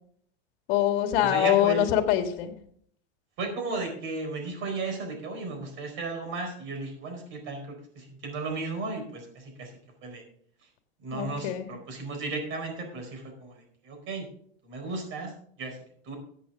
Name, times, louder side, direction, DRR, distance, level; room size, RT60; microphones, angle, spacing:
voice 1, 0.7-2.5 11.1-11.7, left 11 dB, 60° left, 6 dB, 1.9 m, -24 dB
voice 2, 1.2-1.9 3.4-9.7 10.0-10.2 11.0-14.3 14.6-15.3 15.6-15.8 16.0-16.2, right 3 dB, 40° right, 3 dB, 4.5 m, -35 dB
14.0 x 8.3 x 3.7 m, 0.63 s
supercardioid pair, 140°, 32 cm